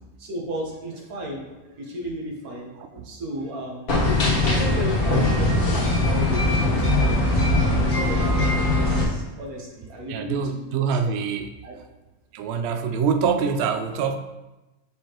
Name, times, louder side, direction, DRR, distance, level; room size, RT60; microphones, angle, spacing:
voice 1, 0.2-7.6 7.9-11.1 11.6-11.7, equal, 80° right, 0 dB, 1.6 m, -35 dB
sound 1, 3.9-9.0, left 2 dB, 90° left, 1.8 m, -21 dB
voice 2, 10.1-11.5 12.3-14.2, right 6 dB, 65° right, 7 dB, 0.6 m, -25 dB
6.5 x 5.4 x 3.0 m, 1.0 s
omnidirectional pair, 1.5 m